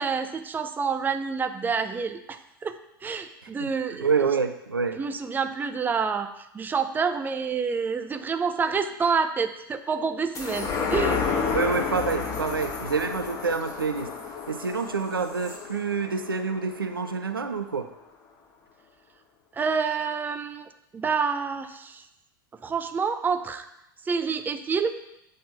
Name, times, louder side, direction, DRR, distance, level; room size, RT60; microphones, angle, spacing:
voice 1, 0.0-4.1 4.9-6.3 6.5-11.2 19.5-22.0 22.6-23.7 24.1-24.9, right 5 dB, 15° right, 8 dB, 0.5 m, -28 dB
voice 2, 4.0-5.0 11.5-14.2 14.5-17.9, right 5 dB, 85° right, 8 dB, 0.5 m, -27 dB
sound 1, 10.3-17.1 17.6-17.7, left 5 dB, 30° left, 1.4 m, -31 dB
7.8 x 3.4 x 5.6 m, 0.83 s
figure-of-eight pair, 80°, 11 cm